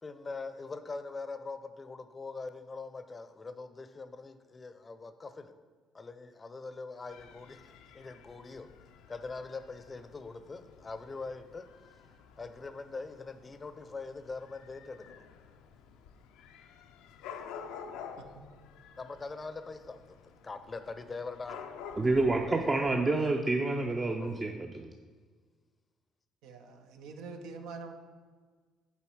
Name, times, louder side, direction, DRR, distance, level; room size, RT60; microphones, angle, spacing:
voice 1, 0.0-5.5 5.9-8.7 9.1-11.7 12.4-15.2 19.0-21.7 24.2-24.5, left 3 dB, 30° left, 10 dB, 0.5 m, -42 dB
Dog / Cat, 7.1-23.0, left 7 dB, 80° left, 0.4 m, -50 dB
voice 2, 22.0-24.9, right 2 dB, 30° right, 3 dB, 0.5 m, -28 dB
voice 3, 26.4-27.9, right 4 dB, 80° right, 6 dB, 0.6 m, -45 dB
7.1 x 4.2 x 4.6 m, 1.5 s
supercardioid pair, 60°, 0 cm